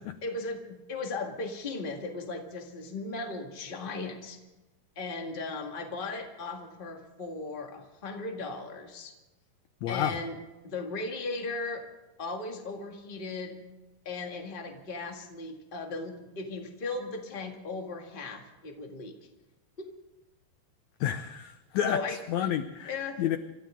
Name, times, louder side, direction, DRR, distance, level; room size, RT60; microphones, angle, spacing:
voice 1, 0.2-4.4 4.9-9.1 9.9-10.4 10.6-11.9 12.2-13.6 14.0-19.1 19.8-19.9 21.8-22.5 22.9-23.2, left 3 dB, 25° left, 2 dB, 1.2 m, -37 dB
voice 2, 9.8-10.2 21.0-22.9 23.2-23.4, left 10 dB, 80° left, 9 dB, 1.7 m, -30 dB
27.5 x 13.5 x 3.8 m, 1.1 s
omnidirectional pair, 4.0 m